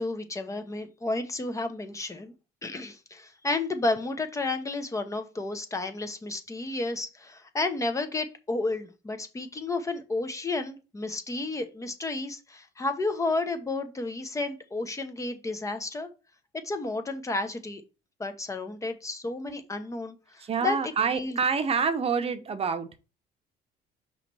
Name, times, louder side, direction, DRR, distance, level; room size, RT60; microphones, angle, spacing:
voice 1, 0.0-2.3 2.6-16.1 16.6-17.8 18.2-21.4, left 2 dB, 20° left, 0.9 m, -32 dB
voice 2, 20.4-22.9, right 6 dB, 35° right, 0.8 m, -27 dB
5.7 x 3.1 x 5.3 m
cardioid pair, 110°, 17 cm